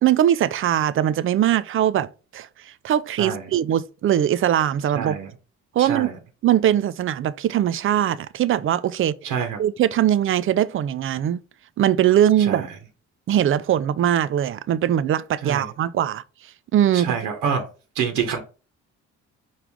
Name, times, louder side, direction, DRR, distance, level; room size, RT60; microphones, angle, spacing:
voice 1, 0.0-5.2 5.7-6.1 6.4-9.3 9.6-11.4 11.8-12.7 13.3-16.2 16.7-17.2, right 11 dB, 40° right, 0.4 m, -21 dB
voice 2, 4.9-5.3 5.8-6.1 9.2-9.6 12.4-12.7 15.4-15.7 16.9-17.7 17.9-18.4, right 7 dB, 75° right, 0.9 m, -26 dB
4.6 x 2.4 x 3.5 m
supercardioid pair, 60°, 32 cm